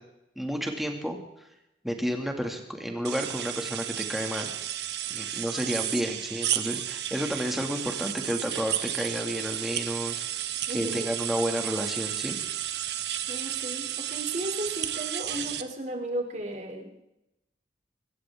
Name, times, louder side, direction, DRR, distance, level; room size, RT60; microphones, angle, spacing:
voice 1, 0.4-1.2 1.8-4.5 5.1-10.5 10.7-12.4, equal, ahead, 2 dB, 2.2 m, -31 dB
sound 1, 3.0-15.6, right 11 dB, 70° right, 1.0 m, -32 dB
voice 2, 10.7-11.1 13.3-17.0, right 1 dB, 40° right, 3 dB, 3.1 m, -35 dB
25.5 x 14.5 x 3.7 m, 0.87 s
head